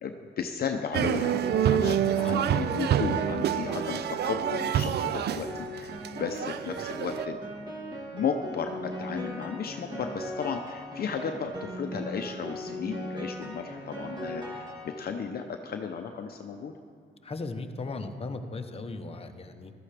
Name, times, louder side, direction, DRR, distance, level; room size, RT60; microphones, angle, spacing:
voice 1, 0.0-7.6 8.1-16.7, left 6 dB, 50° left, 5 dB, 0.7 m, -34 dB
Piano, 0.9-15.3, equal, 20° right, 2.4 m, -39 dB
sound 1, 0.9-7.3, right 10 dB, 55° right, 0.4 m, -28 dB
voice 2, 17.2-19.7, left 3 dB, 30° left, 6 dB, 1.0 m, -37 dB
14.0 x 13.0 x 3.4 m, 2.3 s
cardioid pair, 90°, 20 cm